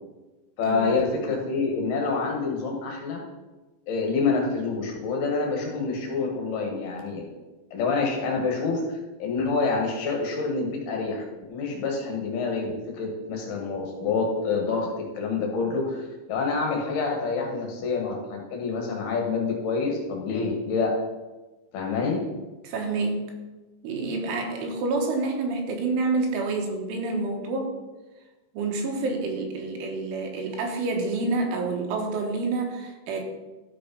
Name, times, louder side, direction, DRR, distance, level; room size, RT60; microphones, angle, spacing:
voice 1, 0.6-3.2 3.9-7.3 7.7-11.2 11.5-20.9 21.7-22.2, left 4 dB, 65° left, 1 dB, 2.9 m, -27 dB
voice 2, 22.6-23.3 23.8-27.7 28.6-33.3, right 3 dB, 80° right, 2 dB, 3.8 m, -28 dB
12.5 x 4.9 x 5.2 m, 1.2 s
omnidirectional pair, 5.4 m